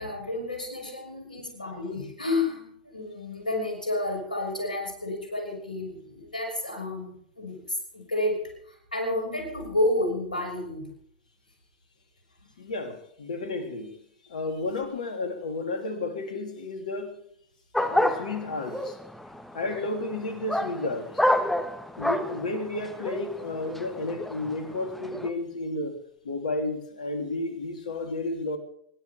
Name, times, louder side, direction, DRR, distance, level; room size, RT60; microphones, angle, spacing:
voice 1, 0.0-10.9, left 2 dB, 80° left, 1 dB, 6.2 m, -30 dB
voice 2, 12.6-14.0 14.3-17.2 17.8-19.0 19.5-21.2 22.0-26.0 26.2-28.6, left 2 dB, 65° left, 6 dB, 3.2 m, -32 dB
sound 1, 17.7-25.3, left 1 dB, 5° left, 1.4 m, -29 dB
25.5 x 11.5 x 3.5 m, 0.68 s
figure-of-eight pair, 95°, 4 cm